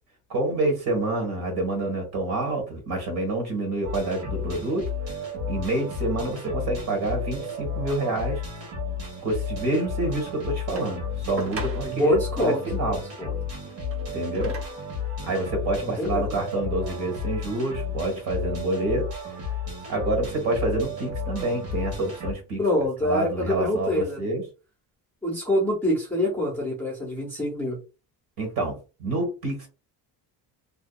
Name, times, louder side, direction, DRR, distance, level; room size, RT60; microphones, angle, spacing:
voice 1, 0.3-4.9 5.5-8.4 9.2-13.0 14.1-14.5 15.3-19.1 19.9-22.6 23.0-24.4 28.4-29.7, right 2 dB, 55° right, 3 dB, 1.2 m, -27 dB
sound 1, 3.8-22.3, left 5 dB, 90° right, 1.2 m, -32 dB
sound 2, 10.8-12.2 13.7-14.9 15.7-15.8, right 2 dB, 35° right, 0.6 m, -38 dB
voice 2, 11.8-13.3 15.8-16.3 22.6-24.3 25.2-27.8, left 1 dB, 5° left, -5 dB, 0.6 m, -26 dB
2.7 x 2.2 x 2.2 m, 0.31 s
cardioid pair, 180°, 43 cm